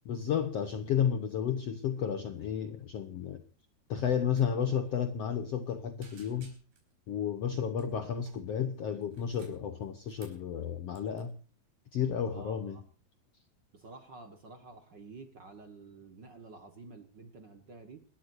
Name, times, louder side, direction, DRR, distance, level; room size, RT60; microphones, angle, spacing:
voice 1, 0.0-3.4 3.9-6.5 7.1-11.3 11.9-12.8, left 8 dB, 80° left, 1.4 m, -32 dB
sound 1, 4.3-4.5 4.7-4.9 5.3-5.7 6.0-6.9 7.7-8.5 9.0-10.5 10.9-11.2, right 4 dB, 85° right, 6.4 m, -57 dB
voice 2, 12.3-12.8 13.7-18.0, right 3 dB, 50° right, 1.3 m, -50 dB
28.0 x 13.0 x 2.7 m
omnidirectional pair, 4.3 m